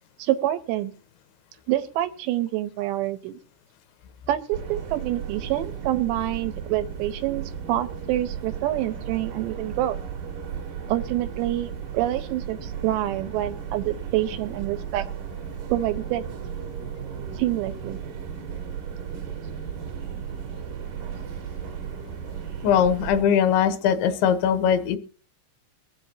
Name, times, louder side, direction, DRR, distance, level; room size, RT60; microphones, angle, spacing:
voice 1, 0.2-0.9 1.7-3.4 4.3-10.0 10.9-15.1 15.7-16.2 17.4-18.0, right 14 dB, 80° right, 11 dB, 2.9 m, -27 dB
sound 1, 4.5-23.2, right 7 dB, 60° right, 2.5 m, -35 dB
voice 2, 22.6-25.0, left 8 dB, 80° left, 9 dB, 3.2 m, -20 dB
23.0 x 7.9 x 2.7 m, 0.39 s
omnidirectional pair, 5.2 m